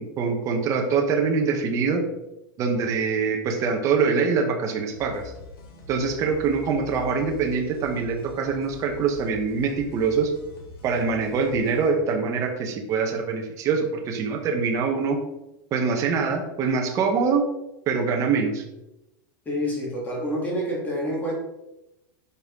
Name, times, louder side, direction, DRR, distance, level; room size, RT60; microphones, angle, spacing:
voice 1, 0.0-2.1 2.6-5.3 5.9-10.3 10.8-15.2 15.7-17.4 17.9-18.6, right 5 dB, 25° right, 2 dB, 1.1 m, -24 dB
sound 1, 4.9-11.9, left 3 dB, 75° left, 3.0 m, -44 dB
voice 2, 19.4-21.3, equal, 15° left, -4 dB, 2.8 m, -27 dB
10.0 x 5.6 x 3.7 m, 0.93 s
supercardioid pair, 170°, 12 cm